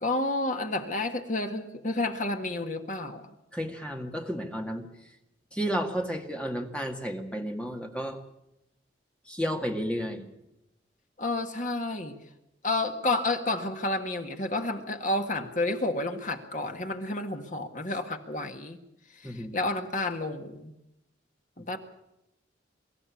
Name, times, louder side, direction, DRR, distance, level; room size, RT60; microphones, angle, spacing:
voice 1, 0.0-3.3 11.2-12.2 12.6-18.8 19.2-20.7 21.6-21.8, left 2 dB, 45° left, 5 dB, 1.8 m, -30 dB
voice 2, 3.5-4.9 5.5-8.2 9.3-10.3 19.2-19.6 21.6-21.7, equal, 5° left, 3 dB, 2.1 m, -32 dB
24.5 x 13.5 x 8.6 m, 0.87 s
head